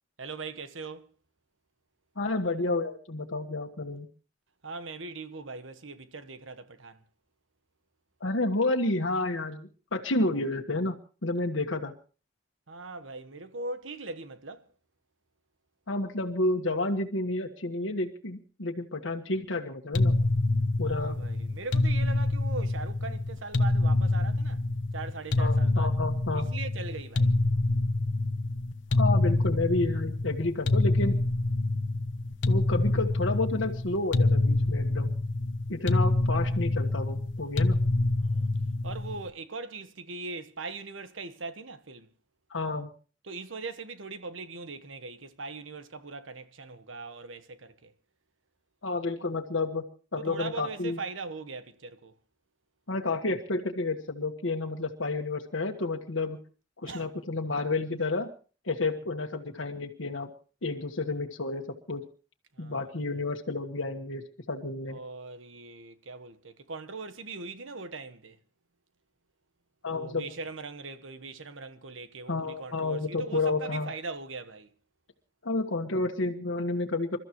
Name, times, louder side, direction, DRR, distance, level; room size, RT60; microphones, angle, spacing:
voice 1, 0.2-1.1 4.6-7.0 12.7-14.7 20.8-24.6 24.9-25.9 26.3-27.3 38.2-38.5 38.8-42.1 43.2-47.9 50.2-52.1 56.8-57.1 62.5-62.9 64.9-68.4 69.9-74.7, right 3 dB, 90° right, 1.3 m, -40 dB
voice 2, 2.2-4.1 8.2-10.9 11.2-11.9 15.9-20.1 20.8-21.2 25.4-26.5 29.0-31.2 32.5-35.2 35.7-37.8 42.5-42.9 48.8-51.0 52.9-56.4 56.8-58.3 58.6-60.3 60.6-62.0 62.6-65.0 69.8-70.2 72.3-73.9 75.4-77.2, left 2 dB, 90° left, 1.5 m, -30 dB
sound 1, 19.9-39.3, left 2 dB, 75° left, 0.9 m, -26 dB
28.0 x 13.5 x 3.0 m
head